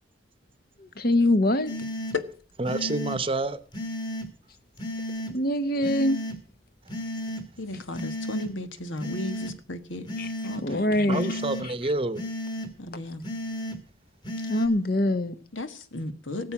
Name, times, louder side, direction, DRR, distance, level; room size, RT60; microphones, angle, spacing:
voice 1, 1.0-1.7 5.3-6.2 10.2-10.3 10.6-11.3 14.5-15.3, left 1 dB, 50° left, 1.1 m, -23 dB
sound 1, 1.7-2.2 2.6-3.2 3.7-4.3 4.8-5.3 5.8-6.4 6.9-7.4 7.9-8.5 9.0-9.5 10.1-10.6 11.1-11.6 12.1-12.7 13.2-13.8 14.2-14.7, left 1 dB, 20° left, 2.1 m, -33 dB
voice 2, 2.6-3.6 10.9-12.2, right 2 dB, 30° right, 0.9 m, -28 dB
voice 3, 7.6-10.1 10.4-11.2 12.8-13.2 15.5-16.5, left 1 dB, 85° left, 1.6 m, -35 dB
18.5 x 7.9 x 6.1 m
head